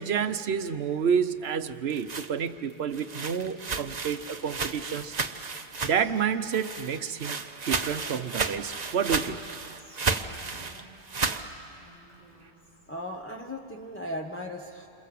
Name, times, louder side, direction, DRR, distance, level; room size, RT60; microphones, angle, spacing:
voice 1, 0.0-5.2 5.8-7.4 7.7-9.5, right 7 dB, 65° right, 11 dB, 1.1 m, -29 dB
sound 1, 1.9-6.2 6.5-11.5, right 4 dB, 40° right, 1.0 m, -33 dB
Whispering, 5.7-7.0 7.2-7.4 7.6-9.2 9.7-12.9, right 1 dB, 80° left, 8.2 m, -57 dB
voice 2, 12.9-14.9, left 1 dB, 10° left, -1 dB, 1.2 m, -37 dB
28.0 x 27.5 x 7.7 m, 2.6 s
omnidirectional pair, 1.2 m